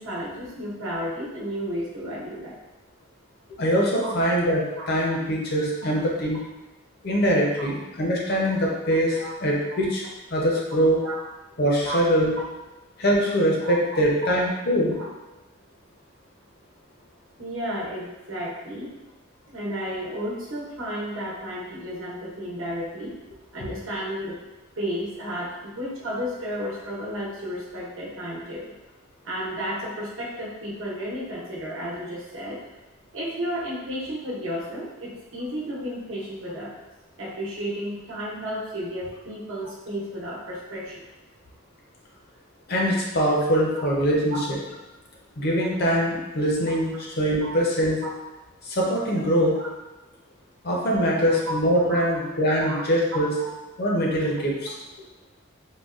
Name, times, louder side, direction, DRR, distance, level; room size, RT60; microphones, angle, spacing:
voice 1, 0.0-2.6 4.8-4.9 5.8-5.9 9.2-9.3 11.0-11.2 11.8-12.0 13.6-13.8 14.2-14.3 15.0-15.1 17.4-18.9 19.5-23.1 23.5-24.4 24.8-28.7 29.2-32.6 33.1-36.7 37.2-41.0 44.3-44.4 47.4-47.5 48.0-48.2 49.5-49.7 51.5-51.6 51.9-52.0 52.6-52.8 53.1-53.5, equal, 75° right, -5 dB, 0.9 m, -32 dB
voice 2, 3.6-6.4 7.0-10.0 10.3-11.0 11.6-12.3 13.0-15.0 42.7-44.6 45.4-48.0 48.6-49.6 50.6-53.3 53.8-54.7, equal, 50° left, -2 dB, 0.6 m, -23 dB
3.8 x 2.2 x 2.4 m, 1.1 s
head